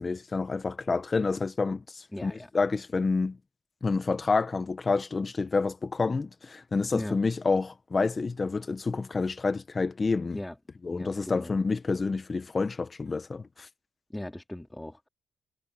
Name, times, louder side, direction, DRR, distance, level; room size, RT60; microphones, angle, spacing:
voice 1, 0.0-3.4 3.8-10.4 10.8-13.7, left 4 dB, 30° left, 1.6 m, -28 dB
voice 2, 2.1-2.5 6.9-7.2 10.3-10.6 10.9-11.6 14.1-15.1, left 1 dB, 10° left, 3.6 m, -38 dB
cardioid pair, 90°, 0 cm